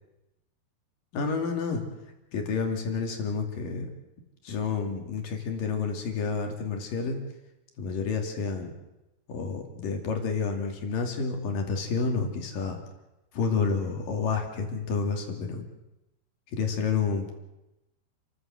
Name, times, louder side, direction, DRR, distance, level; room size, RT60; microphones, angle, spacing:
voice 1, 1.1-1.8 2.3-3.9 4.4-7.2 7.8-8.7 9.3-12.8 13.3-15.6 16.5-17.3, left 5 dB, 55° left, 3 dB, 4.1 m, -29 dB
30.0 x 14.5 x 7.8 m, 0.96 s
omnidirectional pair, 4.8 m